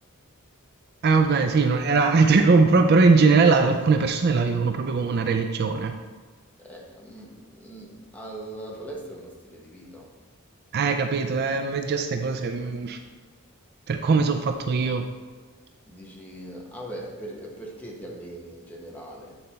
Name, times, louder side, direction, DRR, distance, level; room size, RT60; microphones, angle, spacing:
voice 1, 1.0-6.0 10.7-13.0 13.9-15.1, right 4 dB, 45° right, 6 dB, 0.4 m, -20 dB
voice 2, 6.6-10.2 15.9-19.4, right 1 dB, 5° left, -1 dB, 0.9 m, -40 dB
8.5 x 4.3 x 4.0 m, 1.4 s
head